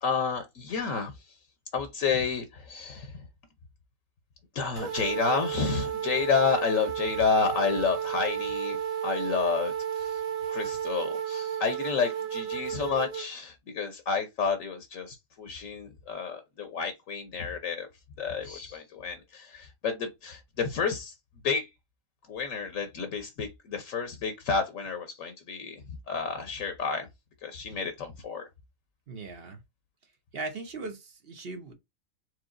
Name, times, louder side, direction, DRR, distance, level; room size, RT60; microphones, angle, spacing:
voice 1, 0.0-1.1 1.7-3.1 4.5-8.8 9.0-10.2 10.5-17.9 18.2-21.1 21.4-21.7 22.3-25.8 26.1-27.1 27.4-28.5, left 5 dB, 70° left, 1.2 m, -30 dB
sound 1, 4.8-13.3, right 9 dB, 65° right, 1.3 m, -32 dB
voice 2, 29.1-29.6 30.3-31.8, right 3 dB, 50° right, 1.0 m, -38 dB
4.7 x 3.8 x 2.5 m
omnidirectional pair, 1.4 m